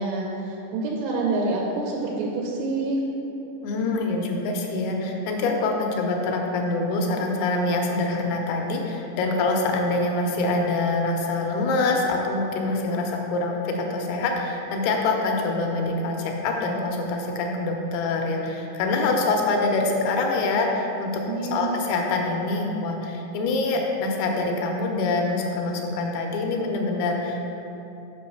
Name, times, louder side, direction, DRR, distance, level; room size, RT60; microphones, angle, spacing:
voice 1, 0.0-3.0 21.3-21.8, right 3 dB, 80° right, -2 dB, 2.8 m, -27 dB
voice 2, 3.6-21.2 21.5-27.5, left 3 dB, 80° left, 1 dB, 2.5 m, -25 dB
6.2 x 5.2 x 6.5 m, 3.0 s
omnidirectional pair, 4.9 m